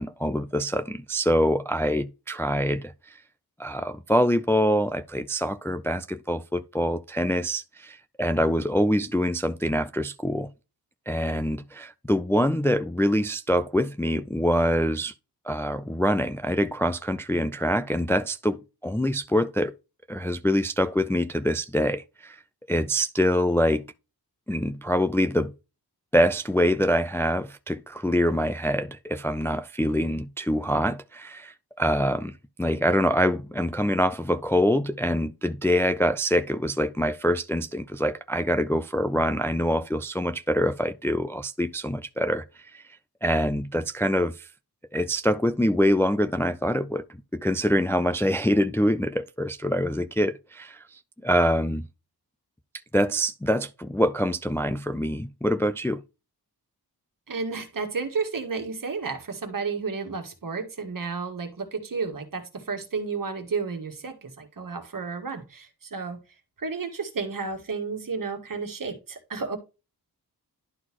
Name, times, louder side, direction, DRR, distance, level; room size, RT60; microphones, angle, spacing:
voice 1, 0.0-2.9 3.6-10.5 11.1-15.1 15.5-19.7 20.1-22.4 22.7-23.8 24.5-25.5 26.1-32.3 32.6-42.4 42.7-42.8 43.2-44.5 44.9-47.0 47.3-51.8 52.9-56.0, equal, 5° left, 0.3 m, -25 dB
voice 2, 57.3-66.2 66.6-69.6, right 4 dB, 60° right, 1.7 m, -32 dB
11.5 x 4.0 x 2.9 m
wide cardioid pair, 130°, 38 cm